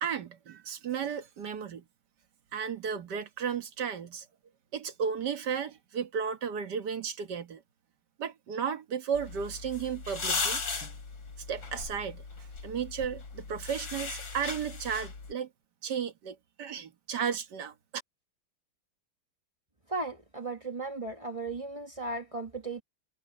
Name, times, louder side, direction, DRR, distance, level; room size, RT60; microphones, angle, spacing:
voice 1, 0.0-1.8 2.5-4.3 4.7-7.6 8.2-10.6 11.5-15.5 15.8-18.0, right 7 dB, 55° right, 1.9 m, -34 dB
sound 1, 9.1-15.3, left 4 dB, 65° left, 4.2 m, -37 dB
voice 2, 19.9-22.8, right 3 dB, 20° right, 1.1 m, -36 dB
omnidirectional pair, 2.3 m